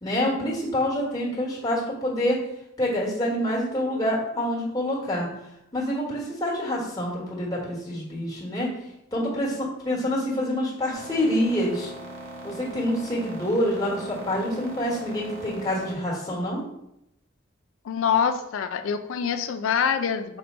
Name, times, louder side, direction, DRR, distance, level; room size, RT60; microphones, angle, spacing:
voice 1, 0.0-2.4 2.8-5.3 5.7-8.7 9.1-11.9 12.4-16.6, left 1 dB, 20° left, -4 dB, 1.3 m, -26 dB
sound 1, 10.9-15.9, right 1 dB, 70° right, 0.9 m, -40 dB
voice 2, 17.9-20.4, left 7 dB, 85° left, 8 dB, 0.4 m, -25 dB
5.5 x 2.2 x 4.2 m, 0.80 s
head